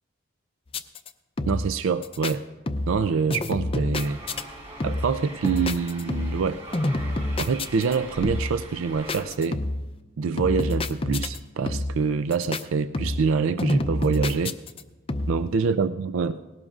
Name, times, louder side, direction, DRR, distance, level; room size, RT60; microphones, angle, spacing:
sound 1, 0.7-1.1 1.4-1.8 2.0-2.3 2.7-3.0 3.3-4.4 4.8-5.2 5.4-6.5 6.7-8.0 8.2-8.6 9.1-9.9 10.4-11.4 11.7-12.0 12.3-12.6 12.9-13.3 13.6-14.8 15.1-15.5, left 2 dB, 25° left, 0.5 m, -28 dB
voice 1, 1.5-2.4 2.9-4.2 4.8-6.6 7.4-9.6 10.2-14.5 15.3-16.4, right 5 dB, 65° right, 12 dB, 0.4 m, -25 dB
sound 2, 3.9-9.2, right 2 dB, 30° right, 4.5 m, -41 dB
19.0 x 17.0 x 2.4 m, 1.2 s
head